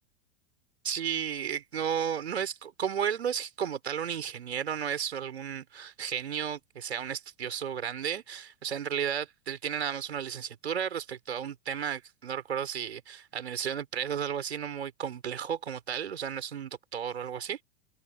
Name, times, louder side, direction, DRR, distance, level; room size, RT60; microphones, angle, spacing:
voice 1, 0.8-17.6, right 8 dB, 65° right, 4.6 m, -33 dB
figure-of-eight pair, 95°, 34 cm